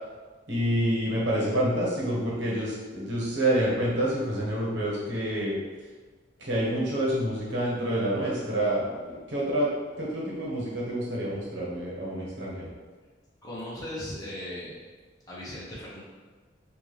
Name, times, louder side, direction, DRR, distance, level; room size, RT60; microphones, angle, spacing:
voice 1, 0.5-5.6 6.4-9.7 10.0-12.7, right 1 dB, 65° right, -5 dB, 1.2 m, -28 dB
voice 2, 13.4-14.8 15.3-16.0, left 1 dB, 20° left, -8 dB, 1.1 m, -37 dB
4.2 x 2.7 x 3.3 m, 1.4 s
head